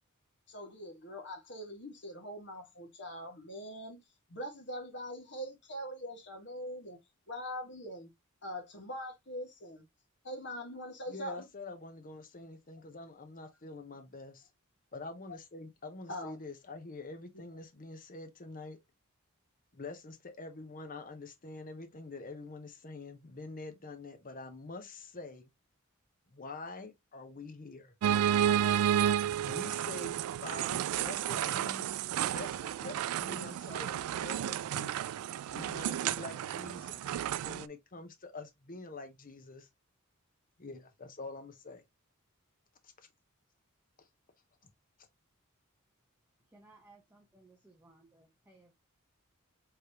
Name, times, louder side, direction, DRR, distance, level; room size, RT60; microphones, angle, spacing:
voice 1, 0.5-4.0 4.3-7.0 7.3-8.1 8.4-9.8 10.2-11.4 16.1-16.4, equal, 55° left, 1.6 m, -42 dB
voice 2, 11.1-14.5 14.9-18.8 19.7-25.5 26.3-27.9 29.4-31.9 32.3-35.0 35.5-37.2 37.4-39.7 40.6-41.8 42.8-42.9 44.0-44.1, left 3 dB, 40° left, 0.9 m, -46 dB
sound 1, 28.0-37.7, right 10 dB, 85° right, 0.3 m, -32 dB
voice 3, 46.4-48.7, right 2 dB, 10° right, 0.9 m, -61 dB
5.0 x 3.2 x 2.9 m
head